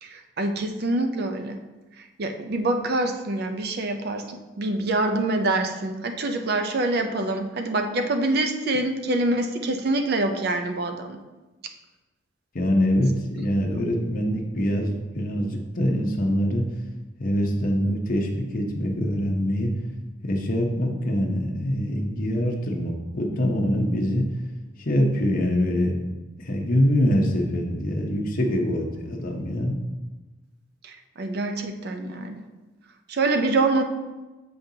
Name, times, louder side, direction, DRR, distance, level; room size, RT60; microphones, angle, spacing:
voice 1, 0.0-1.6 2.2-11.2 13.7-13.8 30.8-32.4 33.1-33.8, right 2 dB, 50° right, 6 dB, 0.5 m, -25 dB
voice 2, 12.5-16.6 17.2-19.7 20.2-24.2 24.8-25.9 26.4-29.7, equal, 45° left, 0 dB, 0.7 m, -24 dB
6.9 x 5.2 x 2.7 m, 1.1 s
head